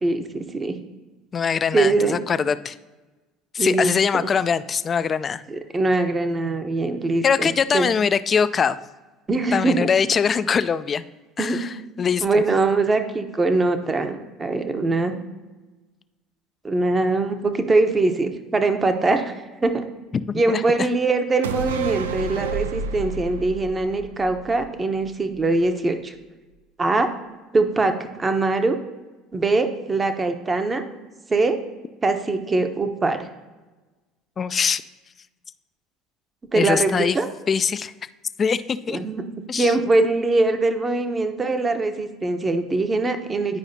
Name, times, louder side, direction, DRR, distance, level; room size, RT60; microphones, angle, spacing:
voice 1, 0.0-0.7 1.7-2.2 3.6-3.9 5.5-7.9 9.3-9.9 11.4-11.6 12.2-15.2 16.6-19.8 20.3-26.1 26.8-27.1 27.5-28.8 29.3-30.9 31.3-31.6 32.0-33.3 36.5-37.3 38.9-39.2 39.6-43.6, right 3 dB, 25° right, 7 dB, 0.8 m, -22 dB
voice 2, 1.3-2.8 3.5-5.4 7.2-8.8 9.5-11.0 11.4-11.7 12.0-12.4 20.3-20.6 34.4-34.8 36.6-37.2 37.5-37.9 38.4-39.0 39.5-39.7, left 6 dB, 35° left, 14 dB, 0.3 m, -22 dB
sound 1, 21.4-25.0 25.3-25.4, right 5 dB, 90° right, 0.3 m, -30 dB
10.5 x 4.8 x 2.7 m, 1.2 s
hypercardioid pair, 75°, 0 cm